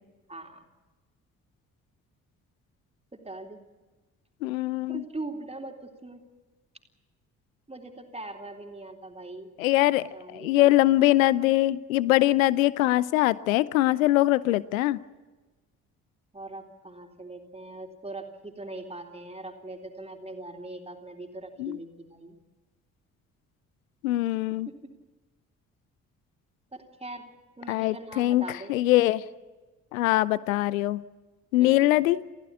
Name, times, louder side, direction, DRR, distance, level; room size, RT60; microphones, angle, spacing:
voice 1, 0.3-0.7 3.1-3.6 4.9-6.2 7.7-9.5 9.9-10.7 16.3-22.4 24.1-24.2 24.7-24.8 26.7-27.3 27.6-28.8 31.6-32.0, right 2 dB, 15° right, 3 dB, 3.8 m, -41 dB
voice 2, 4.4-5.0 9.6-15.0 21.6-21.8 24.0-24.7 27.7-28.4 28.7-29.2 29.9-31.0 31.5-32.2, left 16 dB, 75° left, 20 dB, 0.7 m, -22 dB
28.0 x 16.0 x 8.5 m, 1.2 s
figure-of-eight pair, 40°, 41 cm